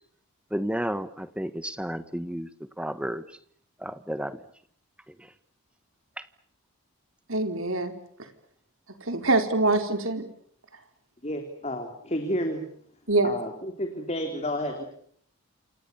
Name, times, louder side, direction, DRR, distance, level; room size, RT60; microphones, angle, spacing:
voice 1, 0.5-2.5 2.8-3.2 3.8-4.4 5.1-5.3 6.2-6.3, equal, 5° right, 1.2 m, -32 dB
voice 2, 7.3-7.9 9.0-10.2 13.1-13.3, right 2 dB, 60° right, 4.4 m, -24 dB
voice 3, 11.2-12.6 13.2-14.8, equal, 30° left, 3.6 m, -31 dB
28.5 x 28.5 x 7.0 m
head